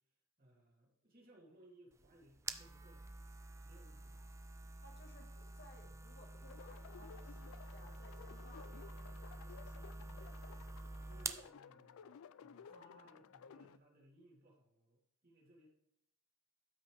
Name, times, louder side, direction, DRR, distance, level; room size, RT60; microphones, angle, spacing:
voice 1, 0.4-3.1 3.6-4.3 11.0-15.7, right 1 dB, 45° right, -3 dB, 2.8 m, -64 dB
sound 1, 1.9-11.5, right 3 dB, 15° right, 0.4 m, -49 dB
voice 2, 4.2-10.7 12.7-13.3, left 1 dB, 50° left, 2 dB, 1.7 m, -63 dB
sound 2, 6.4-13.8, left 7 dB, 70° left, 0.3 m, -57 dB
13.0 x 5.9 x 3.4 m, 0.76 s
head